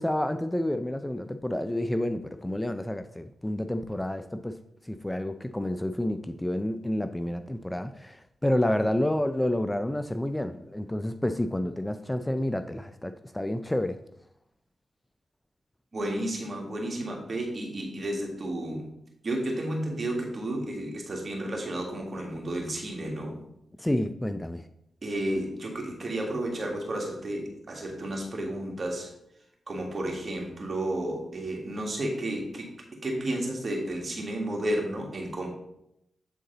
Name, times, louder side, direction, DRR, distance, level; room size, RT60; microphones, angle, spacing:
voice 1, 0.0-4.6 4.8-14.0 23.8-24.7, left 1 dB, 10° left, 9 dB, 0.4 m, -29 dB
voice 2, 15.9-18.9 19.2-23.4 25.0-29.1 29.7-35.5, right 1 dB, 50° right, 0 dB, 1.9 m, -32 dB
8.1 x 3.8 x 3.9 m, 0.79 s
cardioid pair, 55°, 0 cm